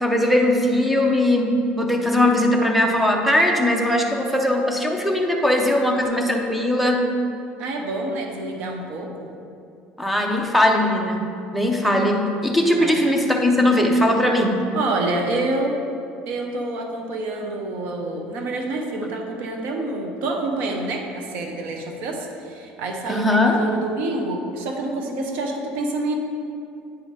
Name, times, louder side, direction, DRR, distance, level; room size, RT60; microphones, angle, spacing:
voice 1, 0.0-7.0 10.0-11.3 11.5-14.6 23.1-23.6, left 1 dB, ahead, 2 dB, 0.6 m, -19 dB
voice 2, 7.6-9.3 12.8-13.0 14.7-15.8 16.3-26.1, right 2 dB, 60° right, 2 dB, 0.8 m, -27 dB
8.9 x 4.2 x 3.5 m, 2.5 s
cardioid pair, 160°, 3 cm